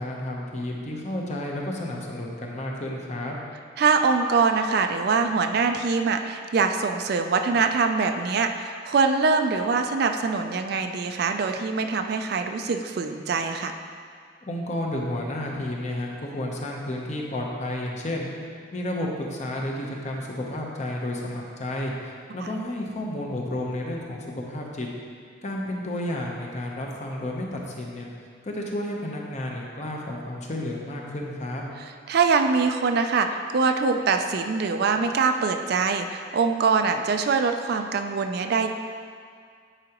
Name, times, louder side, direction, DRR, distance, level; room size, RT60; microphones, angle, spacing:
voice 1, 0.0-3.4 14.5-18.3 18.7-24.9 25.4-28.1 28.4-31.6, left 1 dB, 35° left, -1 dB, 0.8 m, -31 dB
voice 2, 3.8-13.7 32.1-38.7, right 4 dB, 55° right, 6 dB, 0.4 m, -23 dB
9.9 x 4.8 x 2.9 m, 2.1 s
head